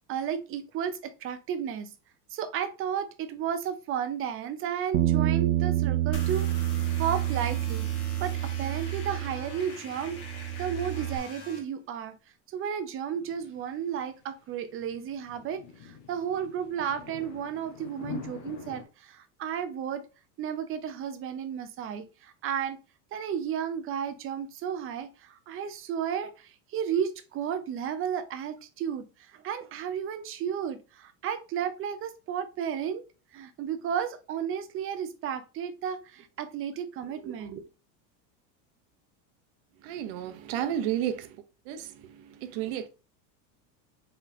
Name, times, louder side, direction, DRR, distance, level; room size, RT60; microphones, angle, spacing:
voice 1, 0.1-1.9 2.3-6.5 7.0-7.9 8.2-10.2 10.6-12.2 12.5-20.0 20.4-22.8 23.1-33.0 33.3-37.7, right 8 dB, 30° right, 0.5 m, -33 dB
Bass guitar, 4.9-9.7 10.0-11.2, right 13 dB, 90° right, 0.7 m, -28 dB
sound 1, 6.1-11.6, left 2 dB, 30° left, 1.4 m, -44 dB
sound 2, 13.3-18.8, left 6 dB, 70° left, 1.3 m, -45 dB
voice 2, 39.8-41.3 41.7-41.9 42.4-42.9, right 10 dB, 55° right, 0.8 m, -31 dB
3.9 x 3.9 x 2.7 m
supercardioid pair, 130°, 49 cm